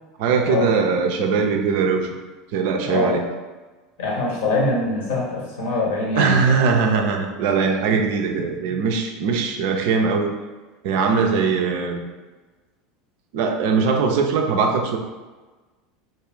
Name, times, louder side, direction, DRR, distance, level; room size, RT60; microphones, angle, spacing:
voice 1, 0.2-2.1 2.5-3.2 6.2-10.3 10.8-12.0 13.3-15.0, right 5 dB, 55° right, 3 dB, 0.3 m, -21 dB
voice 2, 2.8-3.2 4.0-6.6 8.7-8.8, left 2 dB, 60° left, -3 dB, 0.8 m, -23 dB
2.5 x 2.3 x 3.3 m, 1.3 s
figure-of-eight pair, 75°, 0 cm